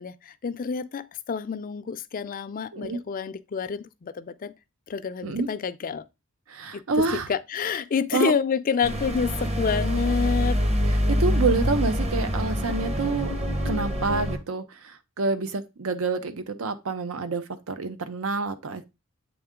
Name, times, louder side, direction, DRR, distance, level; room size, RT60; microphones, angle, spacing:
voice 1, 0.0-4.5 4.9-6.1 6.7-6.8 7.1-10.6, left 6 dB, 40° left, 0.4 m, -28 dB
voice 2, 6.5-7.3 8.1-8.3 11.1-13.4 13.6-18.8, right 3 dB, 75° right, 0.7 m, -28 dB
sound 1, 8.8-14.4, equal, 30° right, 0.9 m, -25 dB
7.8 x 3.6 x 3.6 m
head